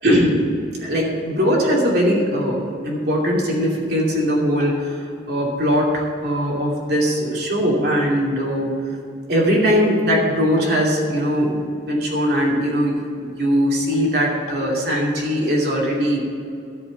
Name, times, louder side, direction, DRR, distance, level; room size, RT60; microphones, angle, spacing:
voice 1, 0.0-0.4 0.7-5.0 5.3-8.7 9.3-16.2, equal, 65° right, -3 dB, 2.7 m, -20 dB
13.0 x 6.5 x 7.8 m, 2.5 s
head